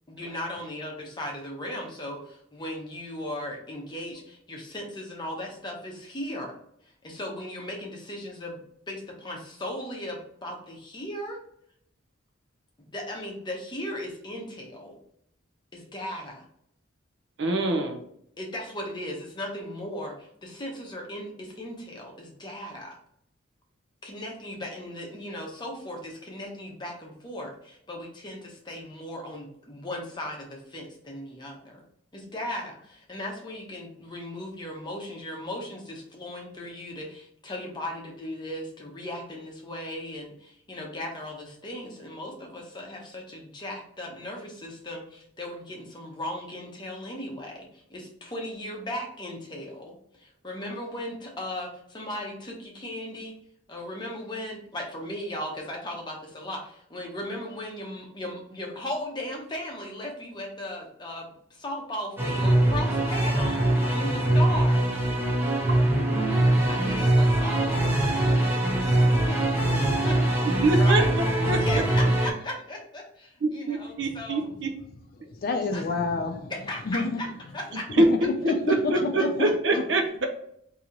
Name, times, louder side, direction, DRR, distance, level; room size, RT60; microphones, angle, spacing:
voice 1, 0.1-6.5 6.8-11.4 12.8-14.9 15.7-16.5 18.4-22.9 24.0-31.8 32.1-53.4 53.7-64.8 66.7-68.3 69.0-69.5 69.8-70.4 70.8-71.1 71.4-74.5 75.7-75.8 76.5-78.0 78.4-78.5, left 1 dB, 20° left, 0.8 m, -37 dB
voice 2, 17.4-18.0 70.6-71.0 71.5-71.6 73.4-74.7 78.0-78.3 78.7-80.3, right 2 dB, 60° right, 0.6 m, -24 dB
sound 1, 62.2-72.3, right 1 dB, 10° right, 0.7 m, -22 dB
voice 3, 75.3-76.5 76.9-77.2 78.1-78.2 78.5-78.7 79.0-79.3 79.7-79.8, left 3 dB, 45° left, 0.4 m, -28 dB
3.0 x 2.8 x 3.8 m
head